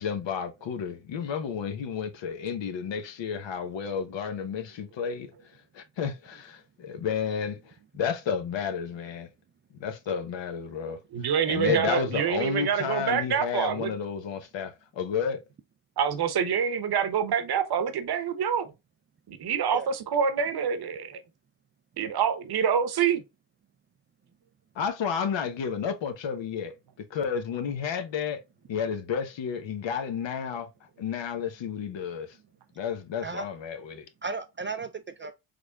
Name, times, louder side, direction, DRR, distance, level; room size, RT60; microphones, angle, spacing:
voice 1, 0.0-5.3 5.7-7.6 7.9-9.3 9.8-11.0 11.5-15.4 24.8-26.7 27.1-28.4 28.7-30.7 31.0-32.3 32.8-34.0, left 7 dB, 70° left, 0.9 m, -31 dB
voice 2, 11.1-13.9 16.0-18.7 19.3-21.2 22.0-23.2, right 7 dB, 55° right, 0.8 m, -26 dB
voice 3, 11.6-12.1 19.7-19.9 33.2-33.5 34.2-35.3, right 3 dB, 30° right, 0.3 m, -33 dB
3.8 x 3.3 x 2.2 m
cardioid pair, 70°, 46 cm